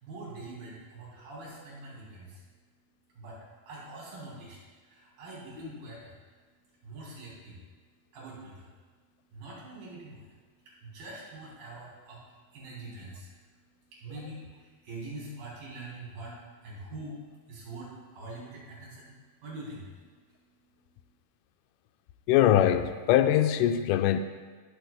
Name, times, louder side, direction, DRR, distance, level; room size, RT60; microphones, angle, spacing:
voice 1, 0.0-2.4 3.2-4.6 4.8-6.2 6.8-7.6 8.1-8.7 9.3-10.3 10.8-12.2 12.5-13.3 13.9-17.2 17.5-19.1 19.4-19.9, right 2 dB, 80° right, -7 dB, 5.1 m, -44 dB
voice 2, 22.3-24.2, left 11 dB, 90° left, 9 dB, 1.8 m, -22 dB
18.5 x 7.7 x 2.3 m, 1.5 s
omnidirectional pair, 4.2 m